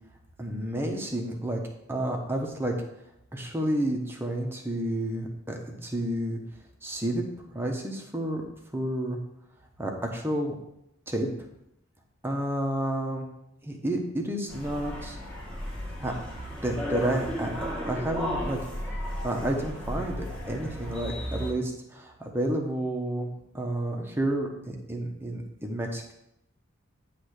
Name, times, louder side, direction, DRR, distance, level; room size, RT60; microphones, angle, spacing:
voice 1, 0.4-1.6 1.9-2.7 3.3-6.4 6.8-7.2 7.5-8.4 8.7-9.2 9.8-10.5 11.1-11.3 12.2-13.3 13.6-15.2 16.0-16.1 16.6-18.6 18.9-26.1, right 1 dB, 10° right, 1 dB, 1.1 m, -30 dB
sound 1, 14.5-21.5, equal, 5° left, 1.8 m, -34 dB
10.0 x 3.4 x 6.5 m, 0.82 s
head